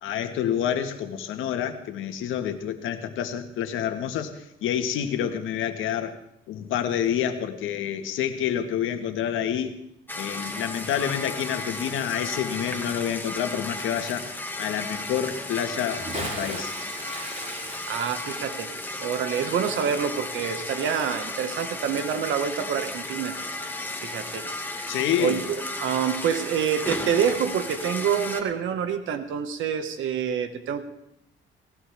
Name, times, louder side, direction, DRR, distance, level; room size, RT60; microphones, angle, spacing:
voice 1, 0.0-6.2 6.5-9.8 10.1-14.3 14.6-16.7 24.9-25.4, left 9 dB, 85° left, 7 dB, 1.6 m, -28 dB
sound 1, 10.1-28.4, left 2 dB, 10° left, 1.8 m, -34 dB
Bathtub (filling or washing) / Splash splatter, 15.8-20.7 21.0-21.1, right 1 dB, 35° right, 5.0 m, -38 dB
voice 2, 17.9-18.7 19.0-23.3 24.0-24.5 25.2-30.8, right 7 dB, 80° right, 8 dB, 1.7 m, -27 dB
18.5 x 18.0 x 3.5 m, 0.75 s
cardioid pair, 90°, 20 cm